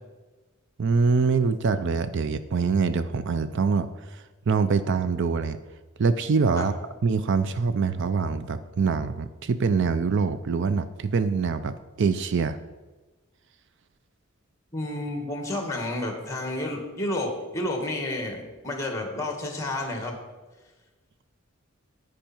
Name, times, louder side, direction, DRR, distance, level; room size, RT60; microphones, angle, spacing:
voice 1, 0.8-5.6 6.0-6.7 7.0-12.6, right 4 dB, 60° right, 12 dB, 0.5 m, -24 dB
voice 2, 14.7-20.2, left 1 dB, 15° left, 2 dB, 2.0 m, -30 dB
10.0 x 9.7 x 4.5 m, 1.2 s
head